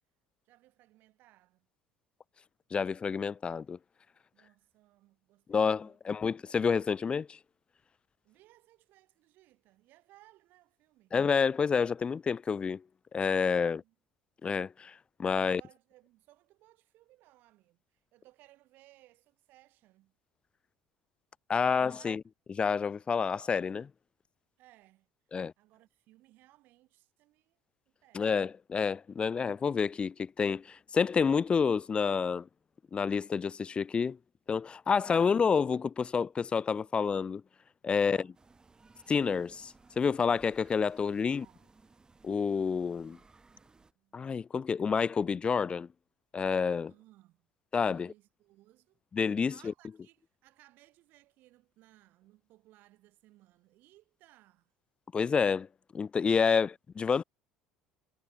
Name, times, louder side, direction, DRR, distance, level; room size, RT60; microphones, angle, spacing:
voice 1, 0.4-1.7 4.3-6.0 8.2-11.2 13.6-13.9 15.4-20.1 21.6-22.2 24.6-25.1 25.6-27.6 27.9-28.5 34.9-35.6 38.0-38.4 41.2-41.7 43.8-44.2 46.9-47.5 47.7-49.0 49.5-54.7, right 17 dB, 60° right, 4.3 m, -62 dB
voice 2, 2.7-3.8 5.5-7.4 11.1-12.8 13.1-13.8 14.4-14.9 15.2-15.6 21.5-22.2 22.6-23.9 25.3-25.5 28.1-32.5 32.9-34.2 34.5-37.4 37.8-38.2 39.1-41.5 42.2-43.2 44.1-45.9 46.3-46.9 47.7-48.1 49.1-49.5 55.1-55.7 55.9-57.2, left 6 dB, 30° left, 0.4 m, -29 dB
sound 1, 38.3-43.9, right 4 dB, 20° right, 1.6 m, -61 dB
hypercardioid pair, 65°, 4 cm